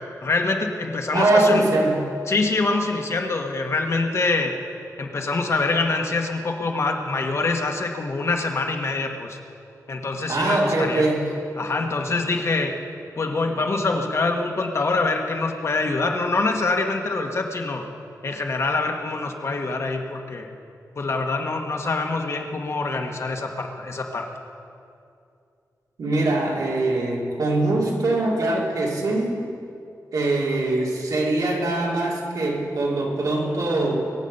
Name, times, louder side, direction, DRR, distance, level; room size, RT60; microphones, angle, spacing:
voice 1, 0.2-1.6 2.3-4.5 5.0-9.4 9.9-11.1 11.6-12.7 13.2-17.8 18.2-20.5 21.0-24.3, left 3 dB, 45° left, 3 dB, 1.3 m, -25 dB
voice 2, 1.1-2.0 10.3-11.3 26.0-29.4 30.1-34.0, right 2 dB, 75° right, -2 dB, 2.8 m, -22 dB
22.5 x 8.4 x 5.4 m, 2.5 s
wide cardioid pair, 150°, 6 cm